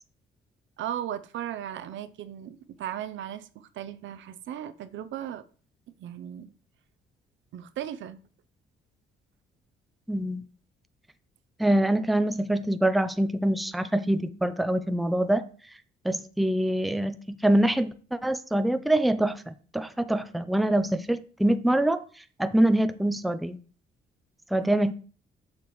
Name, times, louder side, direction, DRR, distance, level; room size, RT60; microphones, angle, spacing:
voice 1, 0.8-5.4 6.0-6.5 7.5-8.2 24.5-24.9, right 10 dB, 75° right, 0.6 m, -37 dB
voice 2, 10.1-10.5 11.6-15.5 16.0-22.0 22.4-23.6 24.5-24.9, right 1 dB, ahead, 0.5 m, -25 dB
6.8 x 6.7 x 3.1 m
cardioid pair, 90°, 20 cm